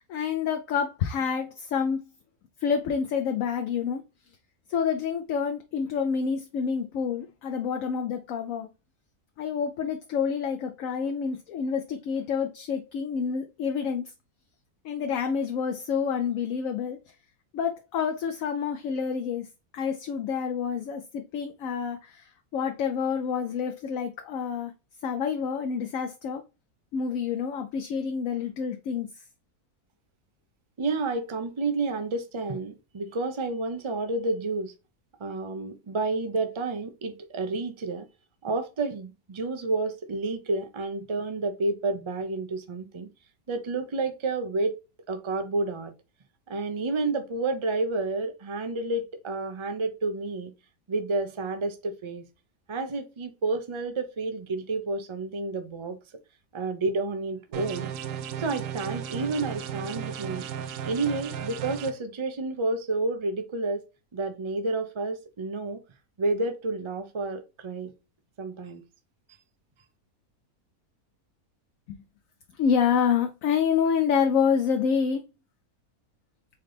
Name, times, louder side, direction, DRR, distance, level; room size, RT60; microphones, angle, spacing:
voice 1, 0.1-2.1 2.6-4.0 4.7-8.7 9.4-14.1 14.8-17.0 17.5-19.5 19.7-24.7 25.0-26.4 26.9-29.1 71.9-72.0 72.6-75.2, left 6 dB, 70° left, 0.9 m, -28 dB
voice 2, 30.8-34.7 35.2-38.1 38.4-43.1 43.5-44.8 45.1-45.9 46.5-50.5 50.9-52.2 52.7-56.0 56.5-57.9 58.4-60.4 60.9-63.8 64.1-65.8 66.2-67.9 68.4-68.8, right 3 dB, 50° right, 0.3 m, -30 dB
sound 1, 57.5-61.9, right 9 dB, 70° right, 0.8 m, -35 dB
4.2 x 3.8 x 3.3 m
omnidirectional pair, 1.6 m